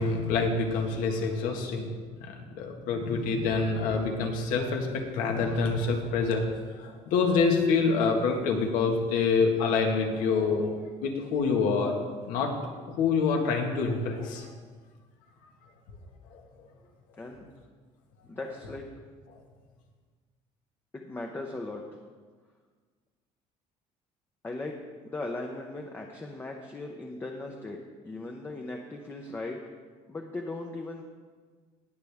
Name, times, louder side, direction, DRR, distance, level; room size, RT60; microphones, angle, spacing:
voice 1, 0.0-1.9 2.2-10.8 11.0-11.9 12.3-12.5 12.9-14.5 16.3-16.4, left 4 dB, 85° left, 2 dB, 1.7 m, -26 dB
voice 2, 17.2-17.5 18.2-18.9 20.9-21.8 24.4-24.8 25.0-29.6 30.1-31.0, left 2 dB, 15° left, 2 dB, 0.7 m, -38 dB
19.0 x 6.7 x 3.5 m, 1.5 s
cardioid pair, 155°, 14 cm